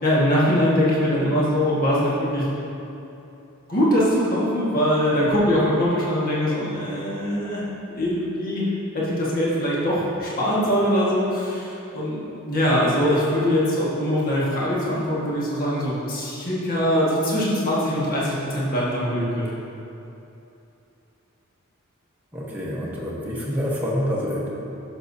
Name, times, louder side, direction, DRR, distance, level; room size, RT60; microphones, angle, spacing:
voice 1, 0.0-2.4 3.7-7.6 7.9-19.5, equal, 40° left, -7 dB, 1.6 m, -22 dB
voice 2, 22.3-24.5, equal, 10° right, -6 dB, 1.1 m, -27 dB
12.0 x 6.5 x 2.7 m, 2.9 s
head